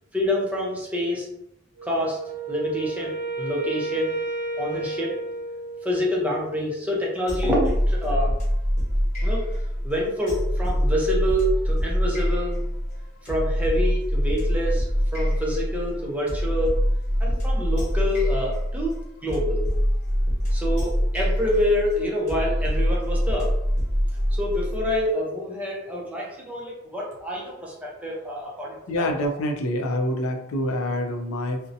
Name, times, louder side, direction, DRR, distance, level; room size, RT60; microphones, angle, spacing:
voice 1, 0.1-1.3 1.8-2.2 2.5-4.1 4.6-5.1 5.8-8.3 9.2-12.6 13.2-14.9 15.1-16.7 17.2-19.0 19.2-19.7 20.5-23.5 24.4-29.1, equal, 5° right, -4 dB, 0.5 m, -27 dB
Wind instrument woodwind instrument, 1.8-6.1, right 2 dB, 35° right, 0.9 m, -32 dB
sound 1, 7.3-25.0, equal, 35° left, 1.1 m, -24 dB
voice 2, 28.9-31.6, left 1 dB, 85° left, 4 dB, 0.4 m, -26 dB
2.6 x 2.1 x 2.5 m, 0.80 s
head